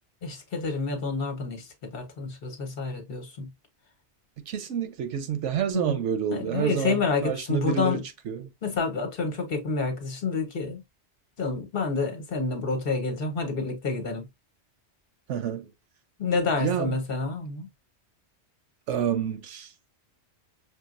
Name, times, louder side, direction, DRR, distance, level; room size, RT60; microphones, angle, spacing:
voice 1, 0.2-3.5 5.7-6.0 6.3-8.0 8.6-10.8 11.4-14.3 16.2-17.7, left 4 dB, 55° left, 1.3 m, -29 dB
voice 2, 4.4-8.5 15.3-15.7 16.6-17.0 18.9-19.7, right 8 dB, 90° right, 1.1 m, -29 dB
5.7 x 2.4 x 2.5 m
omnidirectional pair, 1.2 m